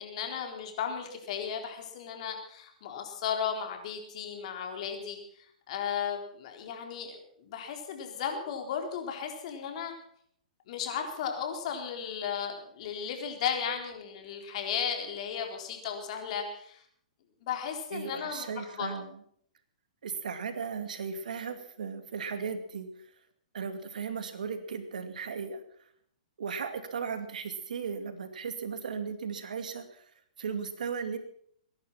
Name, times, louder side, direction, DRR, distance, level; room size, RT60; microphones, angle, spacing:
voice 1, 0.0-9.9 10.7-16.8 17.4-18.5 18.8-18.9, left 7 dB, 55° left, 3 dB, 4.1 m, -35 dB
voice 2, 17.9-19.2 20.0-23.1 23.5-25.9 26.4-31.2, right 6 dB, 75° right, 9 dB, 2.4 m, -36 dB
22.0 x 11.0 x 6.0 m, 0.65 s
hypercardioid pair, 125°, 4 cm